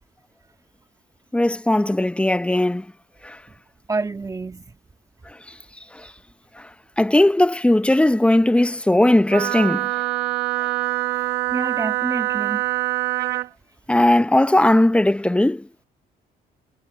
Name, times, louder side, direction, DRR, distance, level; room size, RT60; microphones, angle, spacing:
voice 1, 1.3-2.9 3.2-3.4 5.9-6.1 7.0-9.9 13.9-15.7, left 1 dB, 5° left, 0.8 m, -18 dB
voice 2, 3.9-4.7 11.5-12.9 13.3-13.4, right 3 dB, 20° right, 2.0 m, -28 dB
Wind instrument woodwind instrument, 9.3-13.5, right 19 dB, 70° right, 1.6 m, -24 dB
cardioid pair, 110°, 17 cm